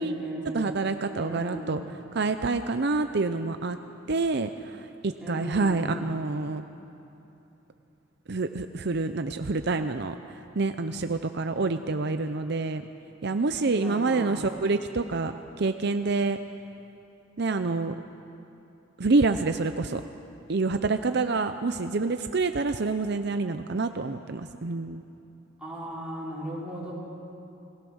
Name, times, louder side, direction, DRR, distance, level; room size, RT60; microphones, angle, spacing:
voice 1, 0.0-0.7 1.1-1.8 5.2-6.1 13.7-14.5 25.6-26.9, right 1 dB, 5° right, -7 dB, 5.3 m, -36 dB
voice 2, 0.5-1.8 2.1-3.8 4.1-6.6 8.3-12.8 13.2-15.3 15.6-16.4 17.4-17.9 19.0-20.0 20.5-25.0, right 3 dB, 55° right, 8 dB, 0.6 m, -27 dB
29.0 x 19.0 x 6.4 m, 3.0 s
head